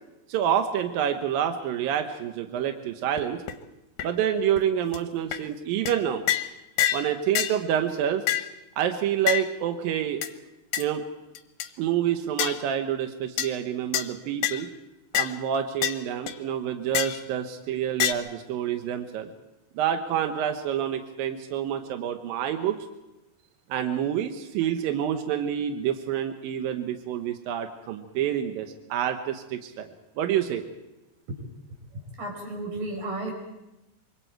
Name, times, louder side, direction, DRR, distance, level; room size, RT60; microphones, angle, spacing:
voice 1, 0.3-3.4 4.0-6.2 6.9-8.2 8.8-10.2 10.8-11.0 11.8-14.7 15.2-19.3 19.8-22.8 23.7-29.9 30.2-30.6, right 9 dB, 70° right, 6 dB, 2.4 m, -27 dB
sound 1, 3.2-3.3 3.5-3.6 4.0-4.1 4.6-4.7 4.9-5.0 5.3-5.4 5.9-6.0 6.3-6.5 6.8-7.1 7.3-7.6 8.3-8.5 9.3-9.5 10.2-10.3 10.7-10.8 11.3-11.7 12.4-12.6 13.4-13.5 13.9-14.1 14.4-14.6 15.1-15.3 15.8-16.0 16.3-16.4 16.9-17.2 18.0-18.1, left 11 dB, 70° left, 2.5 m, -26 dB
voice 2, 32.2-33.3, right 2 dB, 50° right, 1 dB, 6.6 m, -33 dB
25.5 x 24.0 x 4.6 m, 0.95 s
omnidirectional pair, 5.0 m